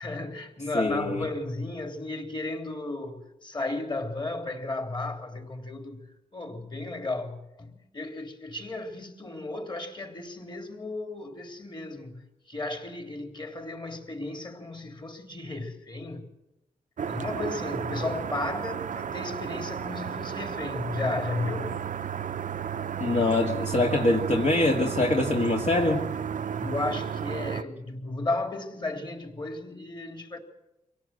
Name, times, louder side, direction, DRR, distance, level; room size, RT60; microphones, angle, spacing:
voice 1, 0.0-6.0 6.3-16.3 17.0-21.8 26.6-30.4, left 2 dB, 30° left, 3.5 m, -34 dB
voice 2, 0.7-1.2 23.0-26.0, left 2 dB, 50° left, 2.0 m, -24 dB
sound 1, 17.0-27.6, right 8 dB, 65° right, 0.7 m, -33 dB
25.0 x 17.5 x 7.8 m
cardioid pair, 80°, 15 cm